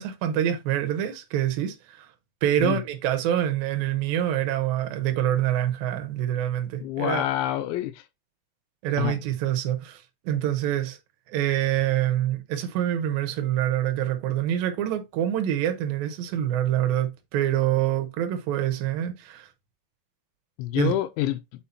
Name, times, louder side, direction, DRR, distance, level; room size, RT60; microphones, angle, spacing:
voice 1, 0.0-2.1 2.4-7.2 8.8-11.0 11.3-19.5 20.7-20.9, right 11 dB, 80° right, 2.1 m, -26 dB
voice 2, 6.8-8.0 9.0-9.1 20.6-21.4, left 13 dB, 85° left, 2.9 m, -27 dB
7.4 x 4.4 x 4.3 m
omnidirectional pair, 5.5 m